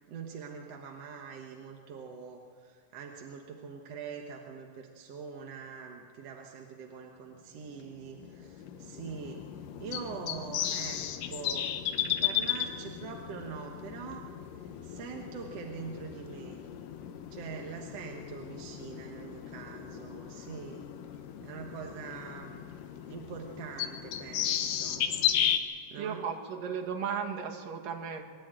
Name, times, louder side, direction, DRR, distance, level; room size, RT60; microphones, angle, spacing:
voice 1, 0.0-11.7 12.2-16.6 17.3-20.9 21.4-22.7 23.1-25.1 25.9-26.3, right 6 dB, 60° right, 1 dB, 2.1 m, -44 dB
sound 1, 7.8-25.6, left 10 dB, 85° left, 2.7 m, -35 dB
voice 2, 26.0-28.2, right 6 dB, 85° right, 2 dB, 3.5 m, -35 dB
25.0 x 13.0 x 9.0 m, 2.2 s
omnidirectional pair, 3.8 m